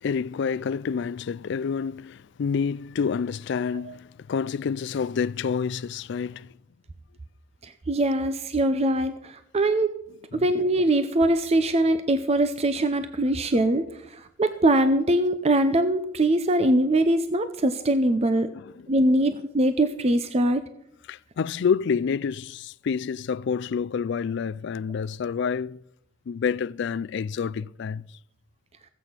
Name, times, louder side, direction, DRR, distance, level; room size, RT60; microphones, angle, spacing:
voice 1, 0.0-6.5 18.5-18.9 21.1-25.8 26.3-28.0, left 6 dB, 60° left, 0.4 m, -28 dB
voice 2, 7.6-9.9 10.3-18.5 18.9-20.6, right 1 dB, 30° right, 0.6 m, -22 dB
15.5 x 8.3 x 5.8 m
head